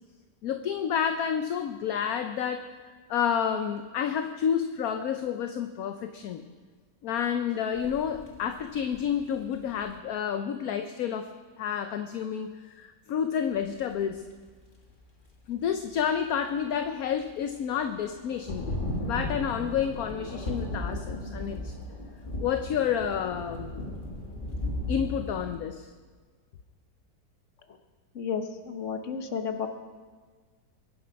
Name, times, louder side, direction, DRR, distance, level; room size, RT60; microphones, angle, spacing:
voice 1, 0.4-2.8 3.1-6.4 7.0-11.3 11.6-14.2 15.5-21.7 22.4-23.8 24.9-25.9, left 8 dB, 65° left, 7 dB, 1.1 m, -30 dB
sound 1, 7.7-10.0 13.6-13.9 14.5-14.7 16.0-16.1 16.8-16.9 17.1-17.5 18.1-25.5, left 1 dB, 30° left, 1.8 m, -36 dB
voice 2, 28.1-29.7, left 6 dB, 45° left, 7 dB, 1.4 m, -32 dB
23.0 x 10.5 x 5.2 m, 1.5 s
omnidirectional pair, 1.9 m